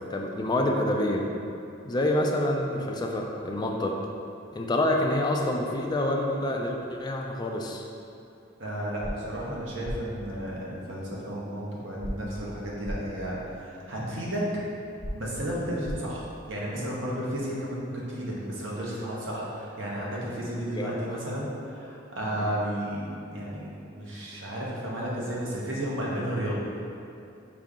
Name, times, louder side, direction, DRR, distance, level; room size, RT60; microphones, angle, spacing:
voice 1, 0.1-1.3 1.8-4.0 4.5-7.9 20.7-20.9 22.4-22.5, left 1 dB, 20° left, 1 dB, 0.3 m, -27 dB
voice 2, 8.6-14.7 15.1-26.6, equal, 65° right, -5 dB, 0.9 m, -33 dB
sound 1, 9.0-9.1 9.8-10.0 12.0-12.1 12.8-13.0 15.0-15.1 15.8-16.0, equal, 45° left, 0.9 m, -33 dB
5.0 x 2.7 x 3.6 m, 2.7 s
head